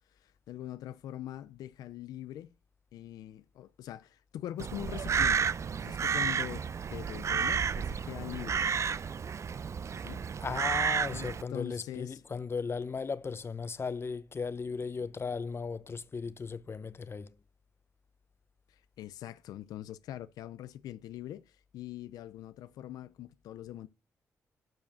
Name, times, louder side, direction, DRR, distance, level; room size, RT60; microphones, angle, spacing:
voice 1, 0.1-2.5 2.9-5.5 5.8-8.7 9.9-10.2 11.1-12.2 18.7-23.9, left 12 dB, 90° left, 0.5 m, -43 dB
Crow, 4.6-11.4, right 6 dB, 50° right, 0.5 m, -31 dB
voice 2, 10.4-17.4, left 5 dB, 40° left, 0.7 m, -36 dB
12.5 x 5.0 x 6.2 m
supercardioid pair, 60°, 6 cm